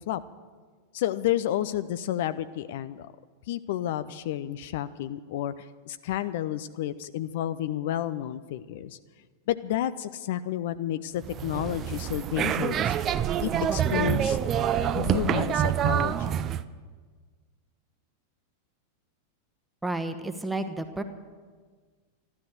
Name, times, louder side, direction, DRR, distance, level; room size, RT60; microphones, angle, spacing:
voice 1, 0.9-3.1 3.5-9.0 9.5-12.9 13.4-14.4 14.9-16.5, left 12 dB, 55° left, 13 dB, 0.5 m, -31 dB
sound 1, 11.2-16.6, right 9 dB, 30° right, 0.5 m, -26 dB
voice 2, 19.8-21.0, right 2 dB, 5° right, 7 dB, 1.2 m, -31 dB
13.0 x 12.5 x 7.8 m, 1.5 s
figure-of-eight pair, 90°, 0 cm